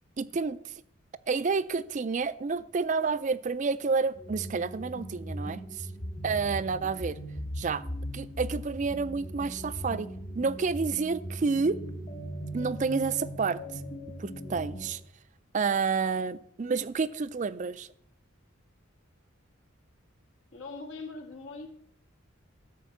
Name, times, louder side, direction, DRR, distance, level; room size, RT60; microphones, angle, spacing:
voice 1, 0.2-0.7 1.3-5.9 6.2-7.2 7.6-7.8 8.1-10.1 10.3-11.8 12.5-13.8 14.2-15.0 15.5-17.9, right 4 dB, 35° right, 0.4 m, -29 dB
sound 1, 4.1-14.9, equal, 45° left, 1.8 m, -39 dB
voice 2, 20.5-21.7, left 3 dB, 75° left, 1.8 m, -41 dB
13.0 x 4.6 x 7.1 m
head